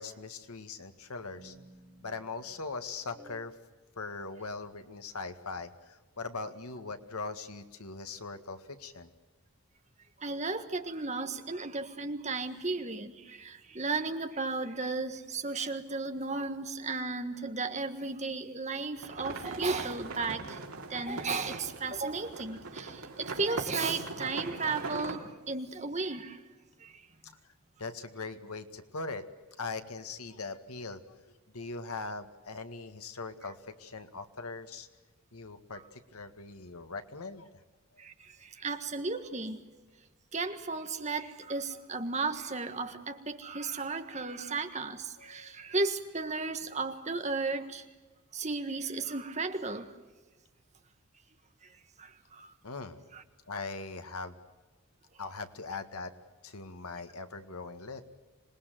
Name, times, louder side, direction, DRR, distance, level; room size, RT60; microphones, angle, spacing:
voice 1, 0.0-1.6 2.0-3.6 4.0-9.1 20.8-20.9 27.4-27.5 27.8-29.2 29.6-31.2 31.5-34.9 35.3-37.5 45.2-45.5 52.6-53.0 53.5-54.4 55.2-56.1 56.4-58.0, left 3 dB, 85° left, 8 dB, 1.9 m, -41 dB
sound 1, 1.3-3.5, right 1 dB, 45° left, 7.8 m, -56 dB
voice 2, 10.2-20.6 20.9-26.4 26.8-27.0 38.0-39.6 40.3-47.8 48.3-49.9 52.0-52.5 53.1-53.2, right 3 dB, 30° right, 7 dB, 1.6 m, -34 dB
sound 2, 19.0-25.2, right 3 dB, 85° right, 3.3 m, -40 dB
26.5 x 20.0 x 7.7 m, 1.3 s
head